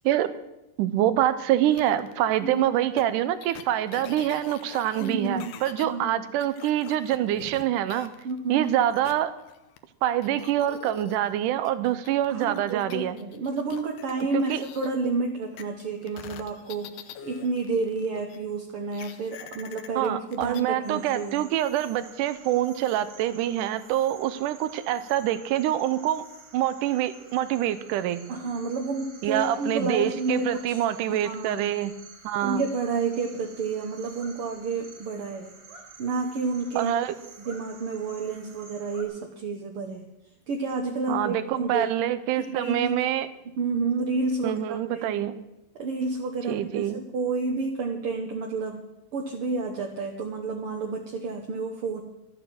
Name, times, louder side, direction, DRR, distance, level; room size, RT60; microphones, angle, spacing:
voice 1, 0.8-8.1 8.5-9.3 10.0-13.2 14.3-14.6 20.0-26.2 26.5-28.2 29.2-31.9 32.2-32.6 36.8-37.1 41.1-43.3 44.4-45.3 46.5-47.0, right 12 dB, 90° right, 13 dB, 2.3 m, -25 dB
sound 1, 1.7-2.1 3.0-3.1 3.4-5.9 6.4-8.4 8.6-9.8 10.2-14.9 15.6-18.4 18.9-20.6, left 10 dB, 80° left, 2.3 m, -45 dB
voice 2, 5.0-5.5 5.8-6.2 8.2-8.7 12.3-16.9 17.2-21.4 28.3-30.8 31.1-31.7 32.4-35.5 36.0-36.9 37.4-40.1 40.5-41.9 42.4-43.0 43.6-45.2 45.8-48.8 49.1-52.0, right 4 dB, 60° right, 1 dB, 1.6 m, -30 dB
sound 2, 20.8-39.0, right 4 dB, 40° right, 2.8 m, -50 dB
12.5 x 9.0 x 7.7 m, 0.94 s
omnidirectional pair, 3.6 m